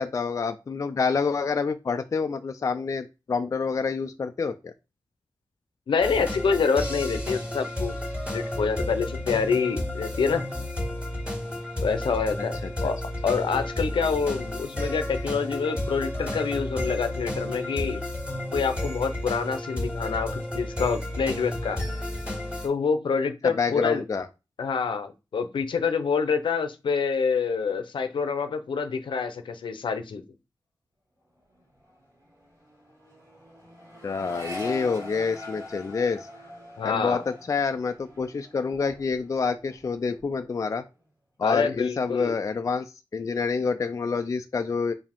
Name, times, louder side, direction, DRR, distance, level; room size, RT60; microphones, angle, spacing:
voice 1, 0.0-4.7 12.6-12.7 23.4-24.3 34.0-36.3 36.8-40.8 41.4-44.9, left 5 dB, 40° left, 7 dB, 0.4 m, -27 dB
voice 2, 5.9-7.9 8.3-10.4 11.8-18.0 18.5-21.8 22.6-24.0 24.6-30.2 36.8-37.2 41.4-42.3, left 5 dB, 80° left, 9 dB, 0.7 m, -27 dB
sound 1, 6.0-22.7, left 1 dB, 10° right, 2.3 m, -32 dB
Accelerating revving vroom, 31.3-31.6 31.8-39.4 39.7-40.3, left 1 dB, 40° right, 2.4 m, -42 dB
4.8 x 2.7 x 3.5 m, 0.27 s
wide cardioid pair, 105°, 8 cm